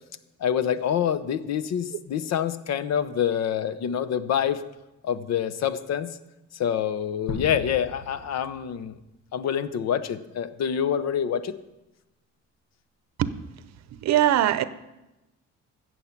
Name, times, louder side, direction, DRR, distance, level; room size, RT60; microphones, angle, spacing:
voice 1, 0.4-4.6 5.0-6.1 6.5-9.0 9.3-11.6, left 9 dB, 60° left, 13 dB, 0.8 m, -26 dB
sound 1, 7.3-9.2, left 3 dB, 90° left, 1.5 m, -38 dB
voice 2, 13.9-14.6, right 12 dB, 65° right, 14 dB, 0.7 m, -21 dB
15.5 x 7.2 x 5.9 m, 0.97 s
cardioid pair, 120°, 29 cm